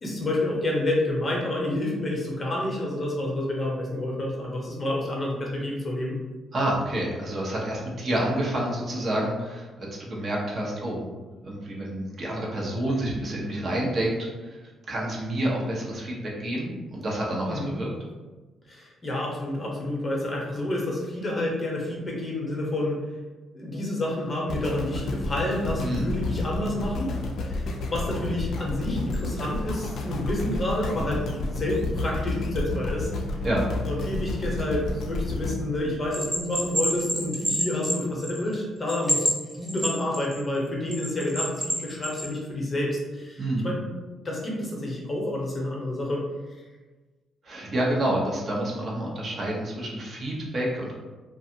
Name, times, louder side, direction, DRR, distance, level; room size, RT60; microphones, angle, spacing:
voice 1, 0.0-6.1 17.5-17.8 18.7-23.0 23.5-27.1 27.4-31.2 31.5-33.1 33.9-43.8 44.2-46.2, left 1 dB, 35° left, -2 dB, 0.7 m, -29 dB
voice 2, 6.5-11.1 11.4-14.2 14.4-17.9 25.8-26.1 33.4-33.7 43.4-43.7 47.4-50.9, right 1 dB, 45° right, -3 dB, 0.7 m, -28 dB
sound 1, 24.5-36.7 37.2-37.3, left 2 dB, 70° left, 0.3 m, -31 dB
Bell, 36.1-38.5 38.9-40.4 40.9-42.3, equal, 10° right, 0.9 m, -27 dB
2.4 x 2.3 x 2.7 m, 1.2 s
cardioid pair, 90°, 0 cm